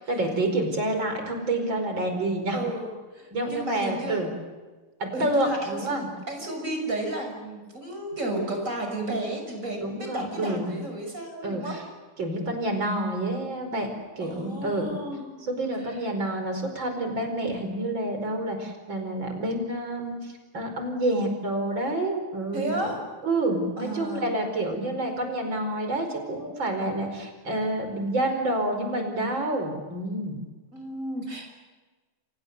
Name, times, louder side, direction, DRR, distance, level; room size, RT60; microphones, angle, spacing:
voice 1, 0.1-2.6 3.3-4.3 5.0-6.1 9.8-10.7 11.4-11.8 12.2-13.9 14.2-15.1 15.4-22.9 23.2-30.4, right 1 dB, 65° right, 5 dB, 5.6 m, -28 dB
voice 2, 2.5-4.3 5.1-11.8 14.2-15.3 15.8-16.0 22.5-23.0 23.8-24.2 30.7-31.5, right 1 dB, 35° right, 2 dB, 6.7 m, -33 dB
30.0 x 26.5 x 6.8 m, 1.3 s
omnidirectional pair, 2.3 m